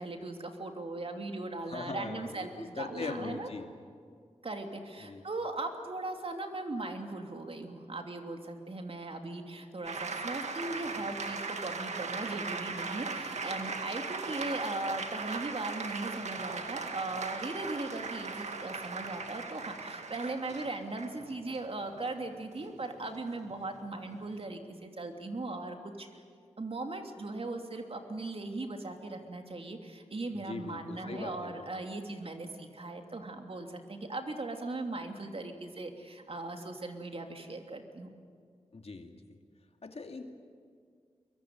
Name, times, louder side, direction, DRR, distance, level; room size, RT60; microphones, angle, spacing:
voice 1, 0.0-3.5 4.4-26.1 26.6-38.1, right 2 dB, 55° right, 4 dB, 3.0 m, -39 dB
voice 2, 1.6-3.7 5.0-5.2 30.3-31.7 38.7-39.2 39.8-40.3, left 3 dB, 60° left, 4 dB, 2.6 m, -40 dB
sound 1, 9.9-24.3, right 4 dB, 75° right, 2.1 m, -38 dB
23.5 x 22.5 x 9.6 m, 2.1 s
cardioid pair, 45°, 12 cm